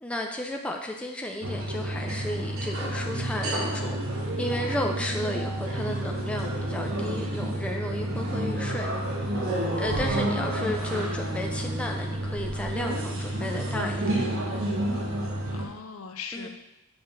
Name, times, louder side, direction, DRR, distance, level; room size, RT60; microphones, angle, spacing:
voice 1, 0.0-4.0 4.4-8.9 9.8-14.2 16.3-16.5, left 1 dB, 5° left, 1 dB, 0.5 m, -33 dB
sound 1, 1.4-15.7, right 1 dB, 65° right, 1.2 m, -30 dB
voice 2, 15.5-16.5, left 5 dB, 75° left, 6 dB, 0.6 m, -40 dB
6.8 x 3.5 x 5.5 m, 0.90 s
head